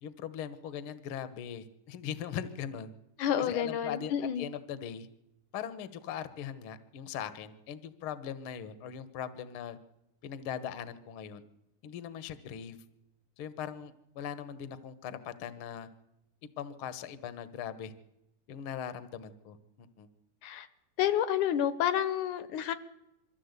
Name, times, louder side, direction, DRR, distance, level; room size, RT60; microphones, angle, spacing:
voice 1, 0.0-2.9 3.4-5.1 5.5-9.8 10.2-11.4 11.8-12.8 13.4-15.9 16.6-17.9 18.5-20.1, left 8 dB, 60° left, 13 dB, 1.5 m, -40 dB
voice 2, 3.2-4.5 20.4-20.7 21.0-22.7, left 10 dB, 75° left, 14 dB, 2.4 m, -29 dB
23.0 x 14.5 x 8.1 m, 0.86 s
omnidirectional pair, 3.6 m